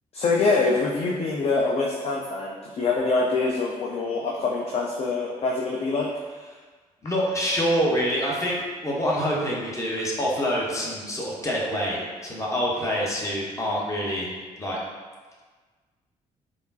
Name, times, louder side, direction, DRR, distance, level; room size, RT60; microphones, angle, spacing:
voice 1, 0.1-6.1, left 3 dB, 35° left, -2 dB, 0.4 m, -25 dB
voice 2, 7.0-14.3 14.6-14.8, equal, 15° left, -4 dB, 0.9 m, -26 dB
3.5 x 2.4 x 2.6 m, 1.4 s
figure-of-eight pair, 45°, 19 cm